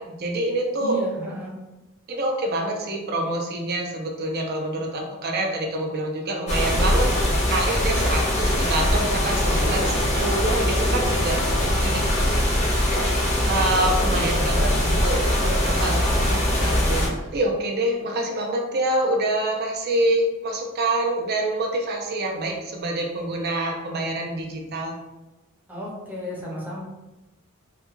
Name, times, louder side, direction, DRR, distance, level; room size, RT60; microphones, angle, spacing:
voice 1, 0.0-1.0 2.1-7.1 7.5-12.0 12.7-12.9 13.4-14.7 15.0-16.0 16.6-24.9, right 1 dB, 50° right, 1 dB, 0.5 m, -26 dB
voice 2, 0.8-1.5 14.0-14.9 15.8-16.3 25.7-26.8, right 1 dB, 10° right, -6 dB, 0.7 m, -33 dB
sound 1, 6.5-17.1, left 1 dB, 30° left, 0.6 m, -22 dB
2.3 x 2.2 x 3.0 m, 1.0 s
head